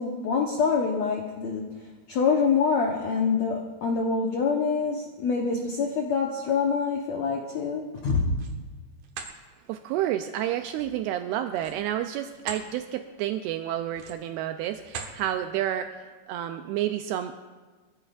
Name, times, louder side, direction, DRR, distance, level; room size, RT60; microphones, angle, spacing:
voice 1, 0.0-1.7 2.1-8.4, left 5 dB, 75° left, 1 dB, 1.6 m, -25 dB
sound 1, 8.0-8.6 9.0-9.4 11.5-12.7 13.1-13.3 13.9-14.4 14.8-15.2, right 6 dB, 65° right, 2.2 m, -40 dB
voice 2, 9.7-17.3, right 12 dB, 85° right, 7 dB, 2.5 m, -30 dB
23.0 x 15.5 x 2.5 m, 1.3 s
omnidirectional pair, 4.7 m